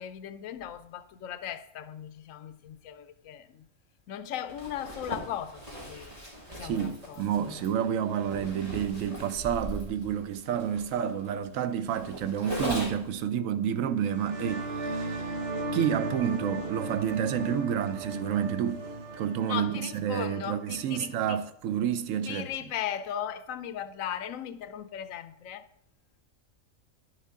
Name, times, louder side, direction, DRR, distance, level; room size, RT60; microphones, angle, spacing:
voice 1, 0.0-3.7 4.1-5.6 5.9-6.2 6.5-7.6 19.5-21.4 22.3-25.7, left 10 dB, 85° left, 1.0 m, -37 dB
Zipper (clothing), 4.5-13.2, equal, 30° right, 2.2 m, -39 dB
voice 2, 6.6-15.4 15.7-18.9 19.1-22.5, right 9 dB, 80° right, 1.0 m, -29 dB
sound 1, 14.0-21.4, right 2 dB, 50° right, 1.4 m, -36 dB
10.5 x 6.5 x 3.7 m
omnidirectional pair, 1.4 m